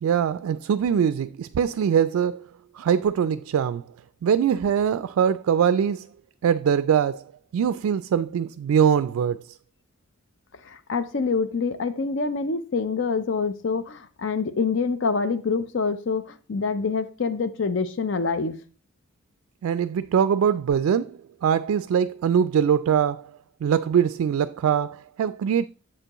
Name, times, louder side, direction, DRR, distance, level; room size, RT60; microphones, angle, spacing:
voice 1, 0.0-2.4 2.7-3.8 4.2-6.1 6.4-7.2 7.5-9.4 19.6-23.3 23.6-25.7, right 8 dB, 85° right, 0.3 m, -22 dB
voice 2, 10.6-18.6, left 4 dB, 60° left, 0.5 m, -26 dB
7.4 x 6.8 x 2.9 m
head